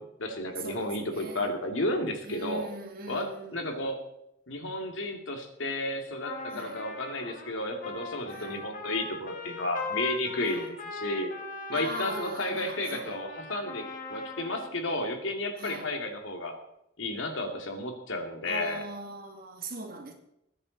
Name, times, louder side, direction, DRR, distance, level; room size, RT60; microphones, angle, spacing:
voice 1, 0.0-2.7 3.1-4.0 4.5-11.3 11.7-16.6 17.0-18.8, left 1 dB, 80° left, 2.6 m, -32 dB
voice 2, 0.6-1.5 2.2-3.8 6.5-6.8 8.3-8.6 10.4-10.7 11.7-13.2 15.6-15.9 18.5-20.1, right 3 dB, 50° right, 2.4 m, -40 dB
Trumpet, 6.2-14.7, left 4 dB, 45° left, 2.2 m, -40 dB
21.0 x 9.9 x 4.2 m
head